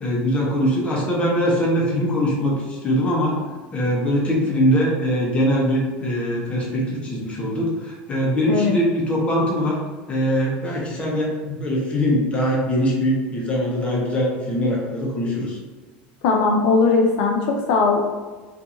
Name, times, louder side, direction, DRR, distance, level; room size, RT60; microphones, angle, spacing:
voice 1, 0.0-3.4 3.7-9.8 10.1-15.6, equal, 20° left, -3 dB, 0.8 m, -22 dB
voice 2, 8.5-8.8 16.2-18.0, left 4 dB, 70° left, 1 dB, 0.4 m, -18 dB
2.7 x 2.5 x 2.4 m, 1.3 s
supercardioid pair, 115°, 5 cm